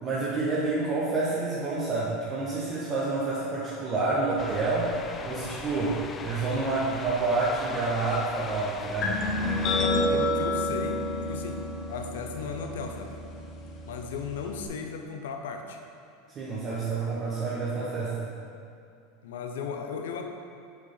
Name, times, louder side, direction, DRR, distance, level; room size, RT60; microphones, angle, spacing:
voice 1, 0.0-9.2 16.3-18.3, right 3 dB, 35° right, -8 dB, 1.4 m, -28 dB
sound 1, 4.4-9.9, left 4 dB, 30° left, 0.5 m, -40 dB
sound 2, 9.0-14.7, left 1 dB, 45° left, 0.9 m, -30 dB
voice 2, 9.8-13.2 13.9-15.8 19.2-20.2, left 6 dB, 80° left, 4 dB, 0.6 m, -36 dB
7.0 x 4.9 x 4.0 m, 2.5 s
hypercardioid pair, 100°, 0 cm